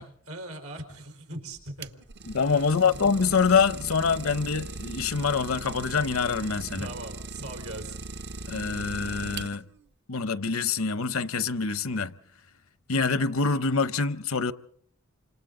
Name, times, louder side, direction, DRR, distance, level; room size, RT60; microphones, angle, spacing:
voice 1, 0.0-1.9 2.5-3.1 6.8-8.1, right 1 dB, 90° right, 4.1 m, -40 dB
Idling, 1.5-9.9, right 3 dB, 50° right, 0.8 m, -39 dB
voice 2, 2.3-6.9 8.5-9.6 10.1-12.1 12.9-14.5, left 5 dB, 70° left, 0.8 m, -25 dB
28.5 x 26.5 x 3.8 m
head